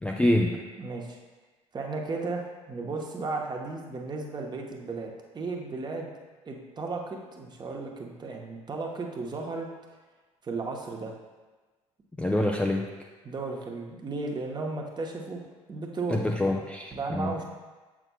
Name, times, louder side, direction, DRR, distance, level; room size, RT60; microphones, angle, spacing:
voice 1, 0.0-0.6 12.2-12.9 16.1-17.4, left 1 dB, 5° left, 0 dB, 0.4 m, -26 dB
voice 2, 0.8-1.2 1.7-6.1 6.4-9.7 10.4-11.1 13.2-15.4 15.7-16.2 16.9-17.4, right 3 dB, 25° right, 1 dB, 1.0 m, -34 dB
7.8 x 6.0 x 2.3 m, 1.3 s
figure-of-eight pair, 60°, 17 cm